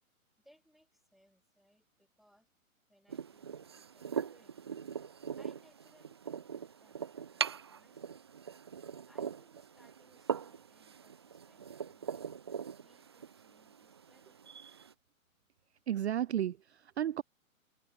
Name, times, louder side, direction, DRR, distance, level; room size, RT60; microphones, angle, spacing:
voice 1, 0.4-2.5 2.9-4.6 5.4-7.0 7.3-8.2 9.1-12.3 12.8-14.8, equal, ahead, 5.8 m, -68 dB
sound 1, 3.1-14.9, right 7 dB, 20° right, 0.4 m, -41 dB
voice 2, 15.9-17.2, right 10 dB, 50° right, 0.7 m, -33 dB
figure-of-eight pair, 130°, 42 cm